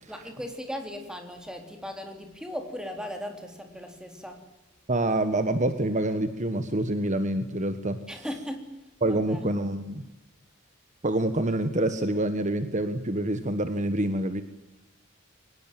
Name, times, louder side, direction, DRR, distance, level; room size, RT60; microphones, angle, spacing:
voice 1, 0.1-4.5 8.1-9.5, equal, 5° right, 4 dB, 3.8 m, -38 dB
voice 2, 4.9-8.0 9.0-10.0 11.0-14.4, right 1 dB, 35° right, 10 dB, 1.4 m, -26 dB
24.0 x 19.5 x 9.1 m, 0.97 s
head